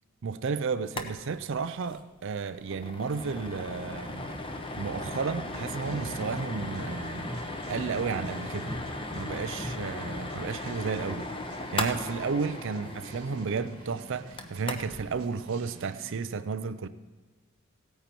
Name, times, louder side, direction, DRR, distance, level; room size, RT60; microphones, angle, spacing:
voice 1, 0.2-4.3 4.8-7.3 7.7-8.8 9.1-11.3 11.7-16.9, right 5 dB, 60° right, 0.5 m, -32 dB
sound 1, 0.8-1.1 1.4-1.5 1.8-2.0 2.4-15.0, left 2 dB, 25° left, 0.9 m, -38 dB
sound 2, 3.0-10.5, equal, 10° right, 0.7 m, -42 dB
sound 3, 5.5-16.3, right 1 dB, 85° right, 1.5 m, -49 dB
16.0 x 9.1 x 4.5 m
head